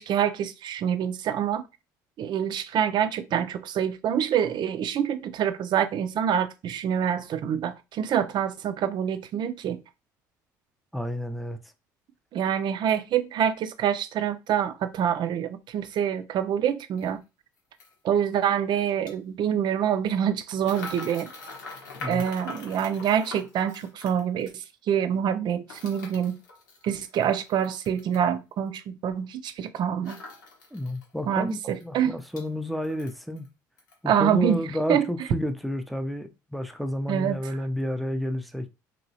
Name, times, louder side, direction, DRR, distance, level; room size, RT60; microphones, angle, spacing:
voice 1, 0.0-1.7 2.2-9.8 12.3-17.2 18.0-21.3 22.1-26.4 26.8-30.2 31.3-32.2 34.1-34.6 34.9-35.1 37.1-37.4, right 9 dB, 50° right, 0.5 m, -26 dB
voice 2, 10.9-11.6 22.0-22.2 30.7-33.5 34.0-38.7, left 1 dB, ahead, 0.5 m, -31 dB
sound 1, 17.0-17.1 17.8-17.9 18.9-19.1 20.6-24.6 25.7-28.3 30.0-31.0 31.4-31.5 31.8-32.5 32.8-33.5 33.8-34.0, left 3 dB, 85° left, 0.9 m, -42 dB
2.9 x 2.9 x 2.7 m
hypercardioid pair, 60°, 10 cm